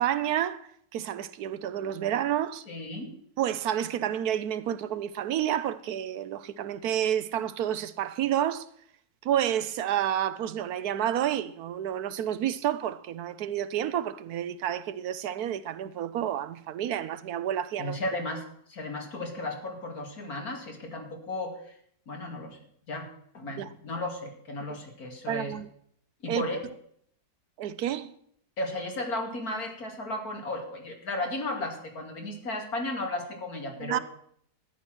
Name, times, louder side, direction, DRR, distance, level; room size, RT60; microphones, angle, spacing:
voice 1, 0.0-2.6 3.4-8.7 9.2-18.0 23.6-23.7 25.3-25.7 26.3-26.5 27.6-28.1 33.8-34.0, right 11 dB, 75° right, 1.2 m, -30 dB
voice 2, 2.7-3.2 17.8-18.4 18.7-21.8 22.1-22.6 22.9-23.1 23.3-25.5 26.2-26.6 28.6-34.0, left 2 dB, 65° left, 2.9 m, -34 dB
13.5 x 9.9 x 6.2 m
omnidirectional pair, 1.7 m